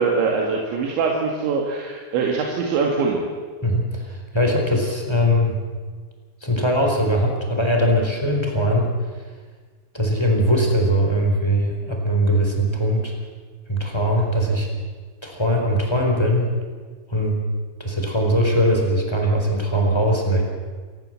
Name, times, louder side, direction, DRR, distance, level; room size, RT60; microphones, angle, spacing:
voice 1, 0.0-3.2, right 4 dB, 85° right, 0 dB, 4.4 m, -22 dB
voice 2, 3.6-5.6 6.4-8.9 9.9-13.1 13.7-14.7 15.2-16.5 17.1-17.4 17.8-20.4, equal, 5° left, 1 dB, 3.5 m, -20 dB
28.0 x 15.0 x 7.6 m, 1.5 s
omnidirectional pair, 5.1 m